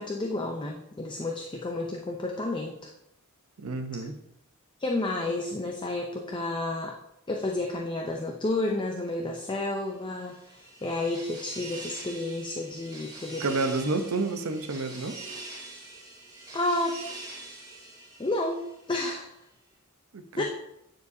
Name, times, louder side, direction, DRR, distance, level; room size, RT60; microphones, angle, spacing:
voice 1, 0.0-2.9 4.8-7.0 7.3-13.4 16.5-17.0 18.2-18.6 18.9-19.3 20.4-20.5, left 2 dB, 20° left, 0.5 m, -31 dB
voice 2, 3.6-4.1 13.4-15.2 20.1-20.4, right 3 dB, 80° right, 0.7 m, -30 dB
sound 1, 9.9-19.0, right 2 dB, 20° right, 2.3 m, -44 dB
9.6 x 4.4 x 2.7 m
head